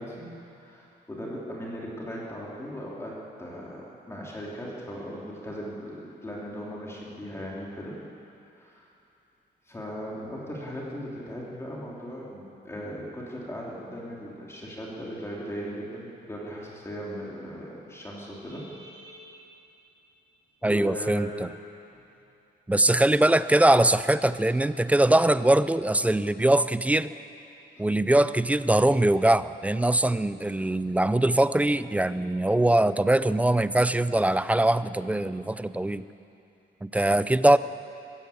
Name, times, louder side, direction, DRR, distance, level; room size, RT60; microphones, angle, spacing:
voice 1, 0.0-8.0 8.5-8.9 9.7-19.5 20.6-21.4 21.9-22.0 27.7-27.9, equal, 15° left, -4 dB, 3.2 m, -38 dB
voice 2, 20.6-21.5 22.7-27.1 27.8-36.0 36.8-37.6, right 1 dB, 10° right, 14 dB, 0.4 m, -22 dB
23.0 x 15.0 x 8.6 m, 2.8 s
wide cardioid pair, 160°, 18 cm